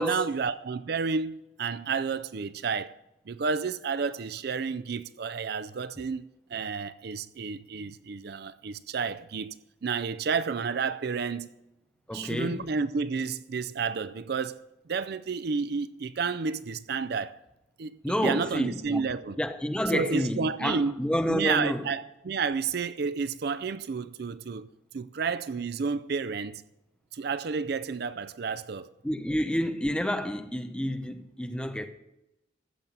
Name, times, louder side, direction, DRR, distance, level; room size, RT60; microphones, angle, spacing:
voice 1, 0.0-2.9 3.3-11.5 12.1-17.4 17.8-19.4 19.9-21.0 21.3-24.7 24.9-26.6 27.1-28.9, right 5 dB, 55° right, 0.4 m, -31 dB
voice 2, 12.1-12.6 18.0-19.0 19.4-21.9 29.0-31.9, equal, 5° left, 0.7 m, -29 dB
14.0 x 7.5 x 5.4 m
head